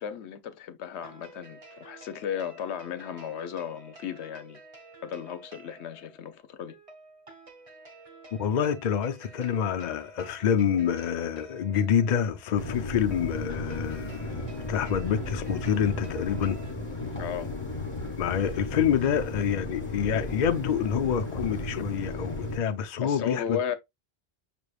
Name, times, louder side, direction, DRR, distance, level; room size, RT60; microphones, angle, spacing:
voice 1, 0.0-4.6 5.0-6.8 17.2-17.5 23.0-23.8, left 8 dB, 85° left, 0.9 m, -35 dB
sound 1, 0.9-16.7, right 3 dB, 35° right, 0.9 m, -51 dB
voice 2, 8.4-16.6 18.2-23.6, left 8 dB, 55° left, 0.6 m, -27 dB
sound 2, 12.6-22.6, left 1 dB, 30° left, 1.6 m, -35 dB
5.9 x 3.3 x 2.3 m
omnidirectional pair, 1.1 m